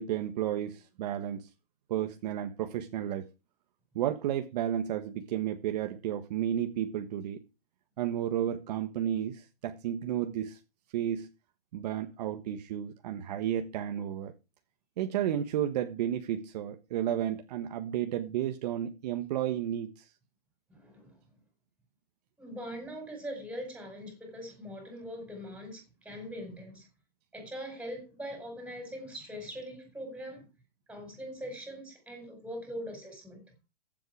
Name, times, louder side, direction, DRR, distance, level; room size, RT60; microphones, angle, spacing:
voice 1, 0.0-1.5 1.9-3.3 4.0-7.4 8.0-10.6 10.9-11.3 11.7-14.3 15.0-20.1, right 10 dB, 45° right, 1.5 m, -32 dB
voice 2, 20.7-21.1 22.4-26.9 27.3-30.5 30.9-33.4, equal, 5° right, 5.4 m, -42 dB
15.0 x 7.9 x 4.8 m
hypercardioid pair, 155°, 30 cm